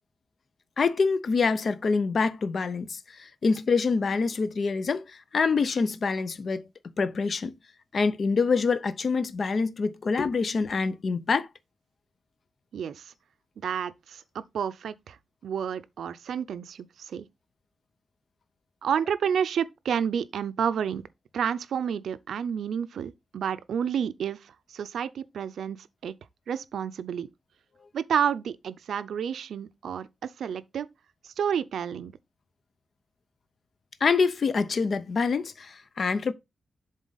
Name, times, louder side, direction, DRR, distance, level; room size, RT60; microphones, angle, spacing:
voice 1, 0.8-7.6 7.9-11.5 34.0-36.3, left 4 dB, 45° left, 0.5 m, -26 dB
voice 2, 12.7-13.1 13.6-15.2 15.4-17.3 18.8-21.0 21.3-26.1 26.5-27.3 27.9-30.9 31.2-32.1, right 8 dB, 90° right, 0.4 m, -30 dB
7.3 x 3.8 x 3.9 m
wide cardioid pair, 175°, 0 cm